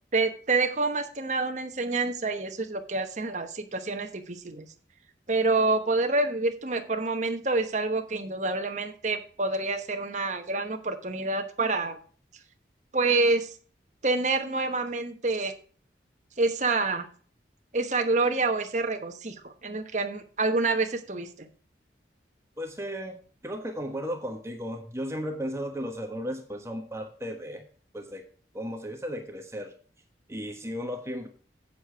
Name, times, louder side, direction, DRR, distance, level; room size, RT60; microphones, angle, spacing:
voice 1, 0.1-4.7 5.3-12.0 12.9-13.5 14.0-15.5 16.4-17.0 17.7-21.5, right 3 dB, 40° right, 6 dB, 1.1 m, -27 dB
voice 2, 22.6-23.2 23.4-27.6 27.9-28.2 28.5-29.7 30.3-31.3, equal, 15° right, 5 dB, 1.3 m, -35 dB
8.4 x 7.1 x 4.6 m, 0.42 s
head